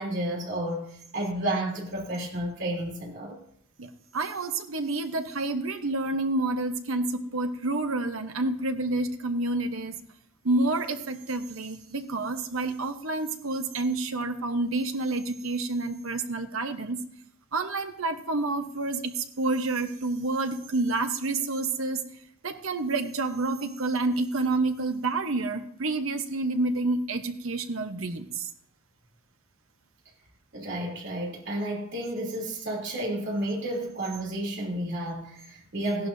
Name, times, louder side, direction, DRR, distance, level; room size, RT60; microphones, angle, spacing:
voice 1, 0.0-3.4 30.5-36.1, right 1 dB, 60° right, 3.2 m, -31 dB
voice 2, 4.1-9.9 10.4-17.0 17.5-22.0 22.4-28.3, right 2 dB, 80° right, 1.0 m, -29 dB
16.0 x 11.5 x 2.7 m
head